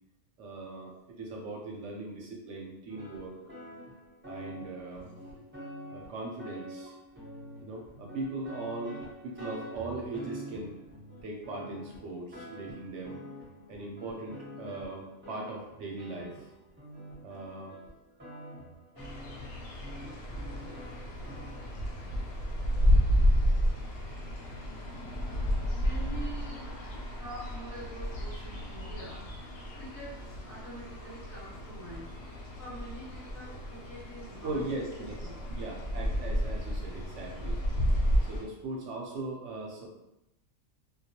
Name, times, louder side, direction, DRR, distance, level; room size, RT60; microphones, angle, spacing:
voice 1, 0.4-3.3 4.3-5.4 5.9-6.9 7.6-9.0 9.2-10.8 11.2-13.2 13.7-16.5 17.2-17.8 18.3-18.6 19.0-19.1 20.0-20.1 34.4-35.1 35.5-37.6 38.3-39.9, right 2 dB, 70° right, -1 dB, 0.8 m, -39 dB
sound 1, 2.9-21.7, equal, 15° right, 0.5 m, -47 dB
sound 2, 19.0-38.4, equal, 70° left, 0.8 m, -31 dB
voice 2, 25.4-35.4, right 1 dB, 15° left, -8 dB, 0.9 m, -46 dB
2.2 x 2.2 x 2.7 m, 0.90 s
omnidirectional pair, 1.4 m